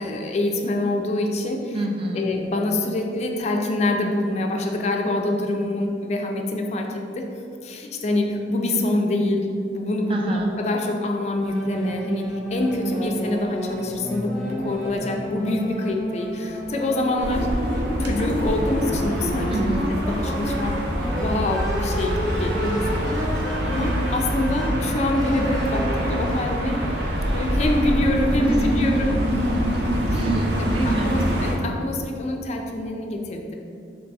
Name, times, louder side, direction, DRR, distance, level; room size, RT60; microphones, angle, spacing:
voice 1, 0.0-1.7 2.1-7.2 7.6-9.5 9.7-17.5 18.0-19.5 20.1-20.8 21.1-23.2 23.6-26.8 27.3-29.2 30.1-30.4 30.9-33.5, left 1 dB, 40° left, 2 dB, 0.4 m, -25 dB
voice 2, 1.7-2.3 10.1-10.5 19.5-19.9 28.4-28.8 30.1-31.2, right 2 dB, 30° right, 2 dB, 0.3 m, -27 dB
sound 1, 11.4-26.0, equal, ahead, 0.7 m, -31 dB
sound 2, 17.2-31.5, equal, 70° right, 0.6 m, -25 dB
3.4 x 3.3 x 4.0 m, 2.5 s
head